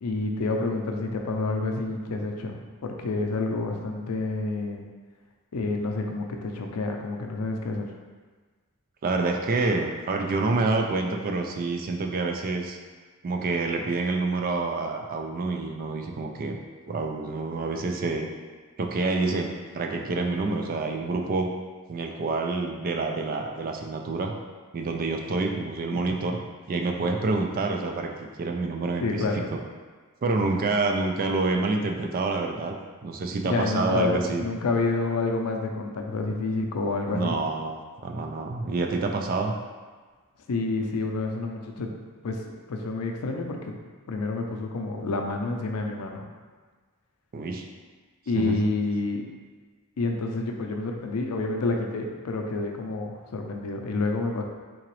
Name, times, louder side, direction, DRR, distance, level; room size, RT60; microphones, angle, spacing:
voice 1, 0.0-4.8 5.5-7.9 29.0-29.5 33.4-37.4 40.5-41.9 42.2-42.4 42.7-43.7 44.1-46.2 48.3-49.2 50.0-54.4, left 3 dB, 90° left, 3 dB, 0.5 m, -28 dB
voice 2, 9.0-12.8 13.2-16.6 16.9-18.3 18.8-21.5 21.9-24.3 24.7-26.4 26.7-29.6 30.2-32.7 33.0-34.4 37.1-39.5 47.3-47.6 48.3-48.6, right 3 dB, 40° right, 3 dB, 0.3 m, -27 dB
3.8 x 2.9 x 3.0 m, 1.4 s
head